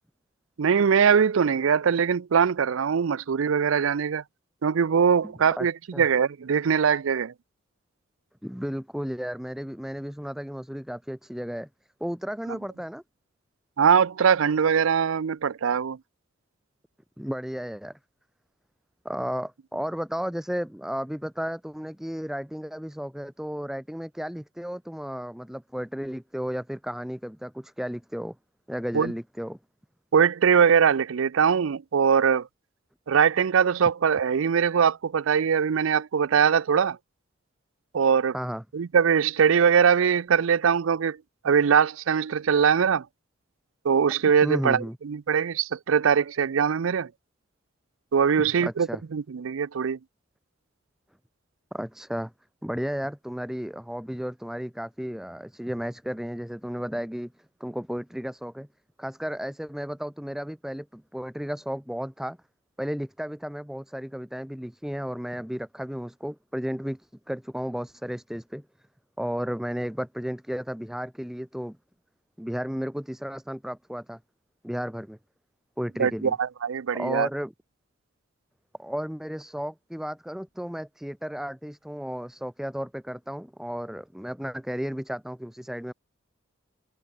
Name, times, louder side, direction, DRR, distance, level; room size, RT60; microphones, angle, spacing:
voice 1, 0.6-4.2 4.6-7.3 12.5-12.6 13.8-16.0 28.9-29.1 30.1-32.5 33.1-37.0 37.9-38.3 38.7-41.2 41.4-43.1 43.8-47.1 48.1-50.0 76.0-77.3, right 7 dB, 90° right, 0.5 m, -22 dB
voice 2, 8.4-11.7 12.0-13.0 17.2-18.0 19.0-28.4 28.7-29.6 38.3-38.6 44.4-45.0 48.6-49.0 51.7-52.3 52.6-57.3 57.6-58.7 59.0-62.4 62.8-67.0 67.3-68.6 69.2-71.8 72.4-74.2 74.6-75.2 75.8-76.3 76.9-77.5 78.8-85.9, equal, ahead, 0.5 m, -33 dB
head